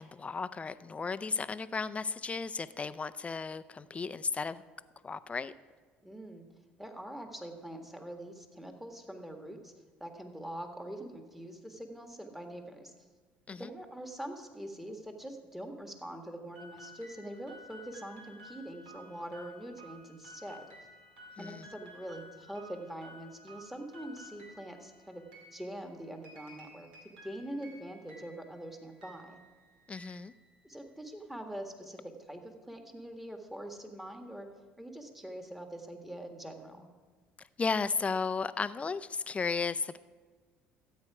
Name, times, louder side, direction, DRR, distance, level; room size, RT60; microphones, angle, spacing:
voice 1, 0.0-4.6 5.0-5.5 13.5-13.7 21.4-21.7 29.9-30.3 37.6-40.0, left 4 dB, 25° left, 14 dB, 0.5 m, -34 dB
voice 2, 6.0-6.5 6.8-9.7 10.0-12.9 13.6-20.6 21.4-29.4 30.6-34.5 34.8-36.9, right 1 dB, 5° right, 5 dB, 1.7 m, -44 dB
sound 1, 16.5-31.0, equal, 85° right, 2.2 m, -54 dB
13.5 x 8.2 x 4.9 m, 1.4 s
hypercardioid pair, 65°, 5 cm